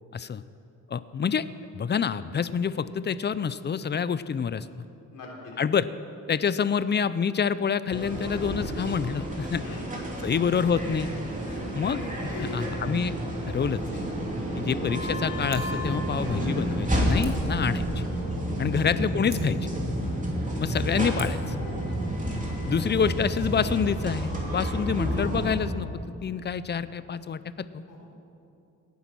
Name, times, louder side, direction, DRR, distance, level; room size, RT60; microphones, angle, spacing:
voice 1, 0.1-0.4 0.9-1.5 1.7-4.7 5.6-5.9 6.3-9.6 10.2-11.1 11.7-13.2 13.5-14.0 14.5-17.9 18.6-19.7 20.6-21.6 22.7-27.8, left 7 dB, 35° left, 15 dB, 0.5 m, -27 dB
voice 2, 5.1-5.6 9.6-9.9 11.4-11.6 12.3-12.7 14.5-14.7 18.7-18.8 20.5-20.7 23.6-23.8 27.9-28.1, left 3 dB, 85° left, -2 dB, 3.3 m, -41 dB
sound 1, 7.9-25.5, right 1 dB, 25° right, 2.9 m, -30 dB
Scissors, 15.4-15.8 17.2-17.5 19.2-19.7 21.1-21.5 23.2-23.4, right 5 dB, 60° right, 2.2 m, -46 dB
17.5 x 9.5 x 6.1 m, 2.6 s
cardioid pair, 90°, 32 cm